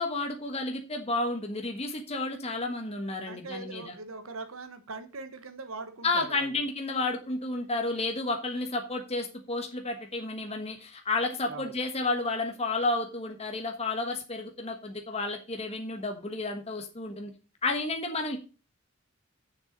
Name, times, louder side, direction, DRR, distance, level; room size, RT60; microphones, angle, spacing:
voice 1, 0.0-3.9 6.0-17.3 17.6-18.4, left 2 dB, 30° left, 1.4 m, -31 dB
voice 2, 3.3-6.6 11.5-11.7, right 3 dB, 80° right, 1.4 m, -41 dB
6.8 x 6.8 x 6.5 m
head